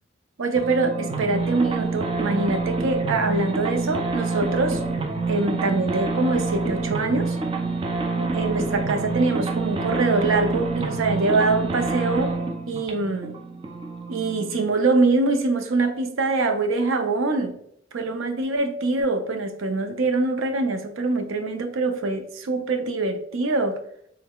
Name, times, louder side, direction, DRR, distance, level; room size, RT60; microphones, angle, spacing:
voice 1, 0.4-4.8 5.3-7.4 8.1-12.4 12.7-13.4 14.1-17.6 17.9-23.8, right 3 dB, 85° right, 6 dB, 0.5 m, -24 dB
sound 1, 0.6-14.7, right 3 dB, 25° right, 0.3 m, -27 dB
3.6 x 3.3 x 2.3 m, 0.69 s
head